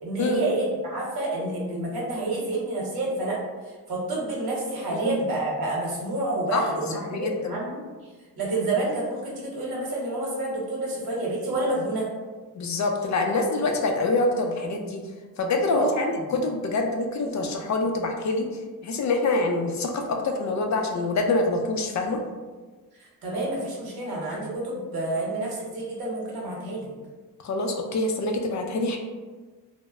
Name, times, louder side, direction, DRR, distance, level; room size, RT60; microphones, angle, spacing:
voice 1, 0.0-3.4 3.9-7.8 8.4-12.1 15.7-16.1 23.0-26.9, right 2 dB, 75° right, -4 dB, 1.0 m, -29 dB
voice 2, 7.1-7.6 12.6-15.0 15.4-18.5 18.8-22.2 27.4-29.0, left 2 dB, 50° left, 3 dB, 0.4 m, -25 dB
2.1 x 2.0 x 3.5 m, 1.4 s
cardioid pair, 80°, 37 cm